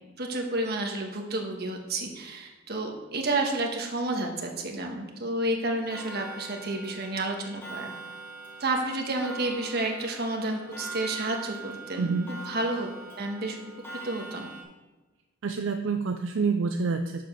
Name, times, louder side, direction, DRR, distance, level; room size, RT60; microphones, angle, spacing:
voice 1, 0.2-7.9 8.6-12.9 13.1-13.6 14.0-14.5, right 2 dB, 50° right, 2 dB, 1.5 m, -30 dB
Clock, 5.9-14.6, right 3 dB, 10° left, 1.7 m, -43 dB
voice 2, 12.0-12.3 15.4-17.2, right 4 dB, 70° right, 6 dB, 0.5 m, -27 dB
7.5 x 6.9 x 5.9 m, 1.2 s
head